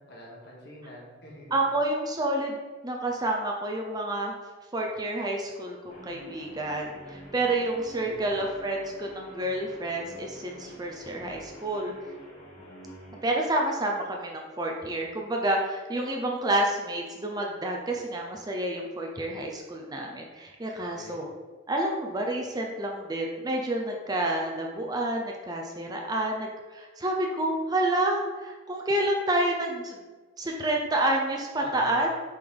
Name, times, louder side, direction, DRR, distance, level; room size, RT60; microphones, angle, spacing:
voice 1, 0.1-1.5 7.9-8.3 20.9-21.2 31.6-32.0, equal, 55° left, -4 dB, 1.8 m, -45 dB
voice 2, 1.5-4.4 4.7-11.9 13.2-21.3 21.7-30.0 30.4-32.1, right 1 dB, 20° right, 0 dB, 0.6 m, -29 dB
Guitar, 5.9-13.3, equal, 30° left, 1.1 m, -47 dB
6.9 x 4.1 x 3.4 m, 1.3 s
head